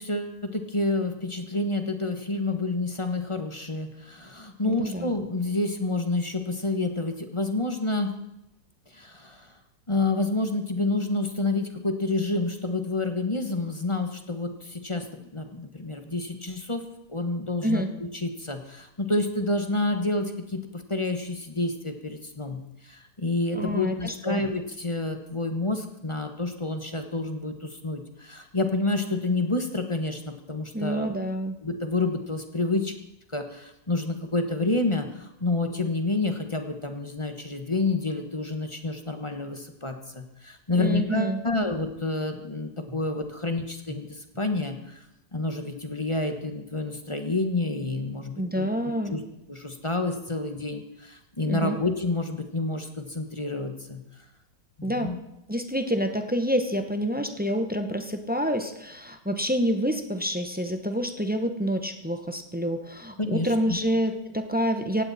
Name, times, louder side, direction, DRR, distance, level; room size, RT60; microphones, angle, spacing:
voice 1, 0.0-8.1 8.9-9.5 9.9-16.8 17.1-31.2 31.6-32.9 33.3-45.0 45.3-49.2 49.5-54.0 54.8-55.2 63.2-63.8, left 2 dB, 20° left, 6 dB, 1.2 m, -29 dB
voice 2, 4.7-5.1 17.6-17.9 23.5-24.4 30.7-31.6 40.8-41.4 48.4-49.2 51.5-51.8 54.8-55.1 55.5-65.0, equal, 10° right, 7 dB, 0.6 m, -27 dB
18.0 x 16.0 x 4.2 m, 0.88 s
omnidirectional pair, 2.0 m